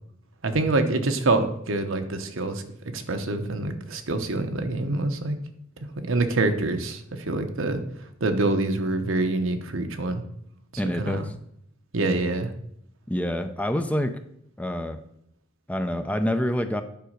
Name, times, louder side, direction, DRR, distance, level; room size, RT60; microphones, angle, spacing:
voice 1, 0.4-2.6 2.9-5.4 5.8-7.8 8.2-10.2 10.9-11.2 11.9-12.5, right 2 dB, 80° right, 7 dB, 1.1 m, -26 dB
voice 2, 10.8-11.3 13.1-14.2 14.6-15.0 15.7-16.8, equal, 5° left, 8 dB, 0.5 m, -27 dB
9.2 x 5.1 x 6.5 m, 0.71 s
head